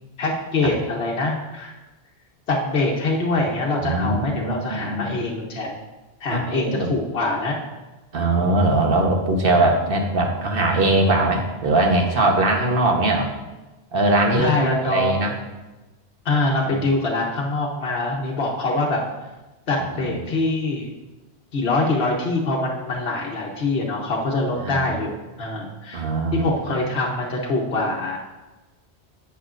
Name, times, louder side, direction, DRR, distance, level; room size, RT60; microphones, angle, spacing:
voice 1, 0.2-1.7 2.5-5.8 6.2-7.6 14.4-15.2 16.2-19.0 19.7-20.9 21.5-25.1 25.4-26.0 26.3-28.2, left 2 dB, 65° left, -2 dB, 1.3 m, -24 dB
voice 2, 3.8-5.1 6.3-6.9 8.1-13.3 13.9-15.4 16.6-16.9 20.0-20.2 24.6-24.8 25.9-26.5, right 2 dB, 55° right, 2 dB, 1.3 m, -21 dB
11.5 x 8.2 x 2.5 m, 1.1 s
omnidirectional pair, 1.1 m